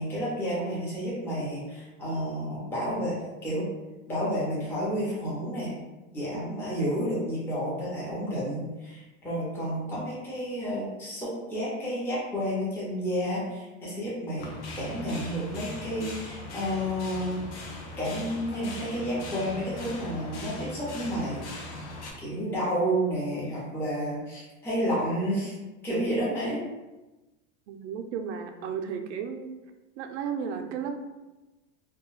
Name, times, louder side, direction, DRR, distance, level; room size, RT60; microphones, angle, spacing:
voice 1, 0.0-3.7 4.1-5.7 6.1-14.5 14.8-17.4 18.0-21.4 22.2-25.5 25.8-26.6, equal, 5° left, -8 dB, 0.5 m, -30 dB
sound 1, 14.4-22.1, left 2 dB, 90° left, 0.7 m, -40 dB
voice 2, 27.7-29.5 30.0-31.0, right 7 dB, 80° right, 5 dB, 0.5 m, -34 dB
2.3 x 2.2 x 3.0 m, 1.1 s
supercardioid pair, 155°, 34 cm